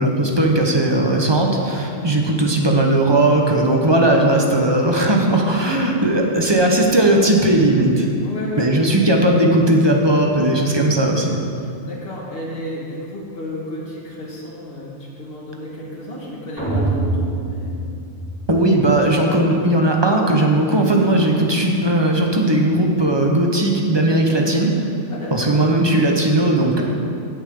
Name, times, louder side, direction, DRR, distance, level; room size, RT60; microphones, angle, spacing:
voice 1, 0.0-8.1 8.6-11.4 18.5-24.9 25.3-26.8, right 1 dB, 25° right, 1 dB, 1.0 m, -17 dB
voice 2, 8.2-8.8 11.6-17.8 25.1-25.5 26.8-26.9, left 1 dB, 55° left, -4 dB, 2.1 m, -32 dB
sound 1, 16.6-18.7, right 2 dB, 90° right, 3.1 m, -24 dB
16.5 x 6.9 x 3.8 m, 2.5 s
omnidirectional pair, 1.2 m